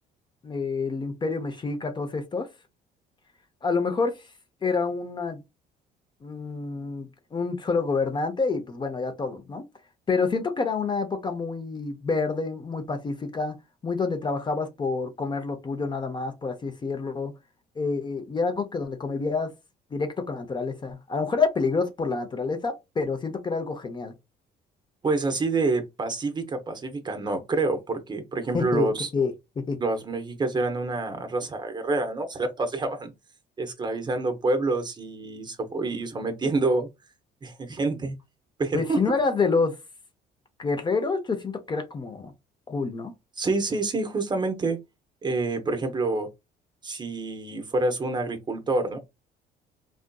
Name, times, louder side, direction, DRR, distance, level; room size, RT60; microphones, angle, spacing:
voice 1, 0.4-2.5 3.6-4.2 4.6-5.4 6.2-9.6 10.1-13.5 13.8-17.3 17.8-19.5 19.9-24.1 28.5-29.8 38.7-39.7 40.6-42.3 42.7-43.1, left 4 dB, 25° left, 0.5 m, -28 dB
voice 2, 25.0-29.1 29.8-33.1 33.6-36.9 37.4-38.2 38.6-39.0 43.4-44.8 45.2-46.3 46.8-49.0, right 3 dB, 25° right, 0.7 m, -27 dB
3.5 x 2.5 x 2.2 m
cardioid pair, 110°, 17 cm